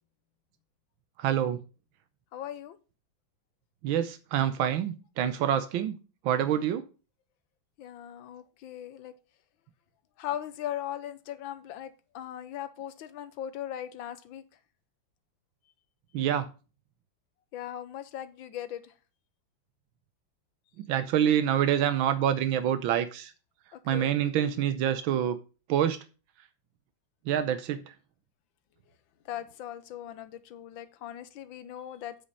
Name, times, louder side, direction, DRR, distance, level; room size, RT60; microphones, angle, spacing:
voice 1, 1.2-1.6 3.8-6.0 6.2-6.8 16.1-16.5 20.9-23.3 23.9-25.4 25.7-26.0 27.3-27.8, right 10 dB, 85° right, 11 dB, 1.5 m, -26 dB
voice 2, 2.3-2.8 7.8-9.1 10.2-14.4 17.5-18.9 23.7-24.2 29.3-32.2, left 11 dB, 80° left, 12 dB, 1.6 m, -39 dB
8.4 x 5.2 x 5.5 m, 0.33 s
omnidirectional pair, 2.1 m